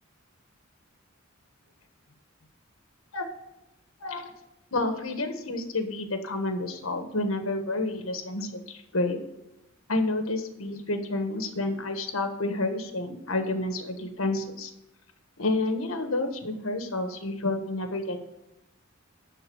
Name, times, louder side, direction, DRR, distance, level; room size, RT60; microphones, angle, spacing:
voice 1, 4.0-4.3 4.7-9.2 9.9-14.7 15.4-18.2, left 2 dB, 80° left, 6 dB, 1.4 m, -29 dB
12.0 x 4.2 x 7.8 m, 0.91 s
head